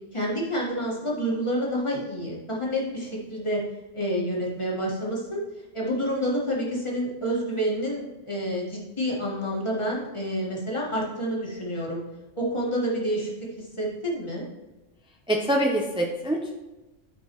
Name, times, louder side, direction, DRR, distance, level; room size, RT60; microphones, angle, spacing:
voice 1, 0.1-3.6 3.9-5.4 5.7-12.0 12.4-13.3 13.6-14.5, equal, 25° left, -4 dB, 1.6 m, -28 dB
voice 2, 15.3-16.5, right 1 dB, 10° right, 0 dB, 0.3 m, -25 dB
10.5 x 4.6 x 3.0 m, 1.1 s
omnidirectional pair, 1.3 m